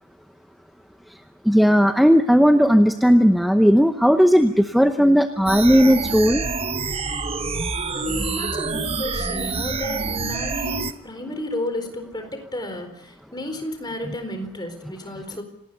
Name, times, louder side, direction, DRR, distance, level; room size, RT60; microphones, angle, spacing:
voice 1, 1.4-6.4, equal, ahead, 6 dB, 0.8 m, -16 dB
sound 1, 5.5-10.9, right 4 dB, 25° right, 0.9 m, -27 dB
voice 2, 7.9-15.4, left 1 dB, 20° left, 6 dB, 4.3 m, -32 dB
27.5 x 19.5 x 6.9 m, 0.84 s
head